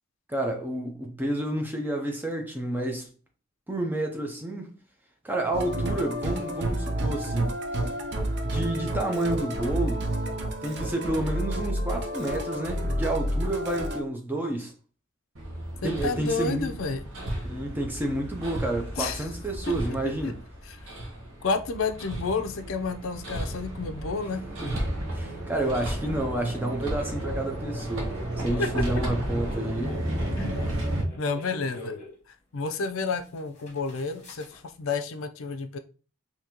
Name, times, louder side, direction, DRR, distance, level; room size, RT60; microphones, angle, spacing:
voice 1, 0.3-3.1 3.7-4.7 5.2-7.5 8.4-10.1 10.6-14.7 15.8-16.7 17.5-20.4 24.6-24.8 25.1-28.1 28.4-30.0, right 1 dB, 10° right, 0.6 m, -30 dB
Musical instrument, 5.5-14.0, right 1 dB, 50° right, 0.6 m, -30 dB
Hammer, 15.3-31.0, right 1 dB, 70° right, 1.1 m, -33 dB
voice 2, 15.8-17.0 19.0-19.3 20.2-20.3 20.6-20.8 21.4-24.4 28.6-28.7 30.4-30.7 31.1-32.0 32.3-35.8, left 4 dB, 70° left, 0.5 m, -30 dB
sound 1, 24.7-24.8 28.0-32.2 32.8-32.9 33.1-34.6, left 2 dB, 30° left, 1.1 m, -44 dB
3.8 x 2.8 x 2.9 m
head